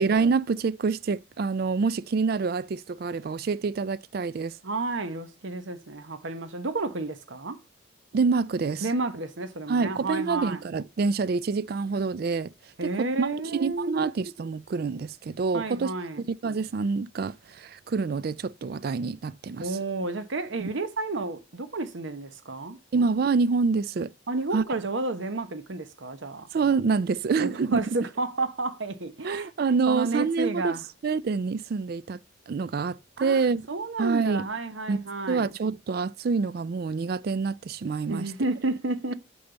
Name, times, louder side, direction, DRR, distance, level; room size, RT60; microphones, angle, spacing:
voice 1, 0.0-4.6 8.1-8.9 9.7-12.5 12.8-13.3 13.6-15.9 16.3-19.7 20.6-20.7 22.9-24.1 24.5-24.6 26.5-27.8 29.2-30.7 31.0-32.2 32.5-33.7 34.0-34.4 34.9-35.0 35.3-38.3, right 4 dB, 50° right, 0.3 m, -26 dB
voice 2, 4.6-7.6 8.8-10.6 12.8-14.1 15.5-16.2 19.6-22.8 24.3-26.5 27.4-29.5 29.9-30.8 33.2-35.5 38.1-39.1, right 2 dB, 70° right, 0.9 m, -31 dB
6.8 x 5.4 x 4.0 m
head